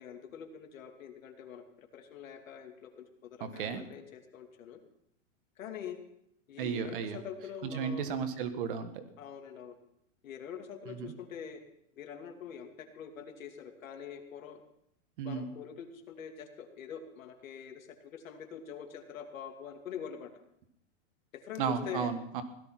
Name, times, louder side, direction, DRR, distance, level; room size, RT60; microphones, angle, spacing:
voice 1, 0.0-4.8 5.6-6.0 6.5-8.0 9.2-9.7 10.2-11.6 12.0-14.6 15.2-20.3 21.3-22.1, left 8 dB, 85° left, 5 dB, 2.7 m, -45 dB
voice 2, 3.4-3.8 6.6-7.2 7.6-9.0 10.9-11.1 15.2-15.5 21.6-22.4, right 6 dB, 40° right, 9 dB, 1.5 m, -34 dB
17.0 x 12.0 x 5.9 m, 0.76 s
supercardioid pair, 175°, 39 cm